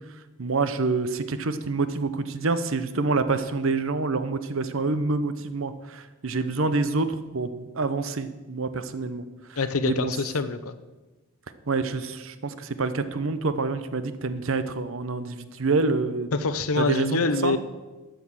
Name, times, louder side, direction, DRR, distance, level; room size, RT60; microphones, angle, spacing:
voice 1, 0.4-9.2 9.5-10.2 11.7-16.3 16.8-17.6, right 3 dB, 70° right, 12 dB, 0.8 m, -27 dB
voice 2, 9.6-10.7 16.3-17.6, left 4 dB, 85° left, 11 dB, 0.8 m, -25 dB
12.5 x 6.4 x 7.2 m, 1.2 s
head